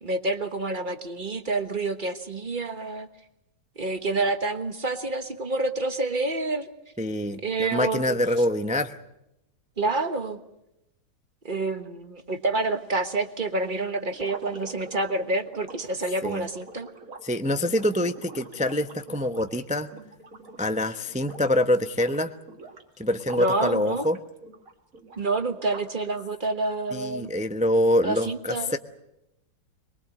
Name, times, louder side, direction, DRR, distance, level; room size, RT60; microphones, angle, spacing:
voice 1, 0.0-3.1 3.8-6.7 7.4-8.2 9.8-10.4 11.4-16.9 23.4-24.0 25.2-27.3 28.0-28.7, right 2 dB, 30° right, 9 dB, 1.4 m, -28 dB
voice 2, 7.0-9.0 16.2-16.5 17.2-19.9 20.6-22.3 23.0-24.2 26.9-28.8, left 1 dB, 10° right, 8 dB, 0.4 m, -25 dB
sound 1, 14.1-20.8 21.1-21.6 21.9-23.5 23.9-26.1, right 3 dB, 50° right, 2.5 m, -45 dB
23.0 x 22.5 x 7.8 m, 0.87 s
omnidirectional pair, 1.8 m